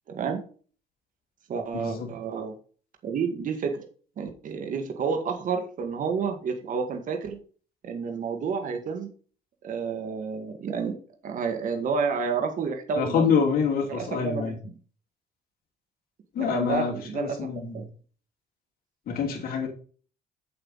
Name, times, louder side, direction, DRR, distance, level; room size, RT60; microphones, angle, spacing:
voice 1, 0.1-0.4 1.5-2.5 3.0-3.8 4.2-7.4 7.8-9.1 9.6-11.0 11.2-13.4 13.9-14.7 16.4-17.9, right 5 dB, 50° right, 4 dB, 1.8 m, -30 dB
voice 2, 1.7-2.1 13.0-14.6 16.3-17.8 19.1-19.7, left 6 dB, 60° left, 1 dB, 2.9 m, -26 dB
8.1 x 7.8 x 4.1 m, 0.41 s
cardioid pair, 110°, 17 cm